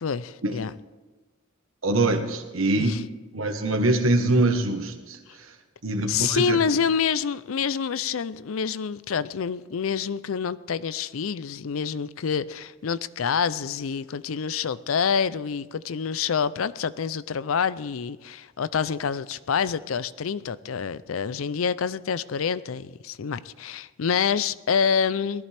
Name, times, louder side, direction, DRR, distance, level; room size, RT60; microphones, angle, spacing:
voice 1, 0.0-0.7 2.8-3.0 6.1-25.5, left 6 dB, 90° left, 16 dB, 0.5 m, -27 dB
voice 2, 1.8-3.0 3.3-5.5 5.8-6.6, right 2 dB, 85° right, 6 dB, 1.3 m, -24 dB
19.0 x 14.0 x 3.4 m, 1.3 s
head